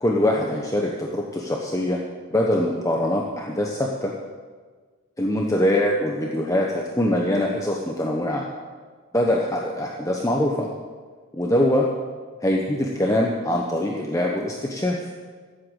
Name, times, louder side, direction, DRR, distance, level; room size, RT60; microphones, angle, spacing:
voice 1, 0.0-2.0 2.3-4.1 5.2-8.5 9.1-10.7 11.3-11.9 12.4-15.0, left 1 dB, 15° left, -1 dB, 1.0 m, -23 dB
14.0 x 8.1 x 8.0 m, 1.5 s
head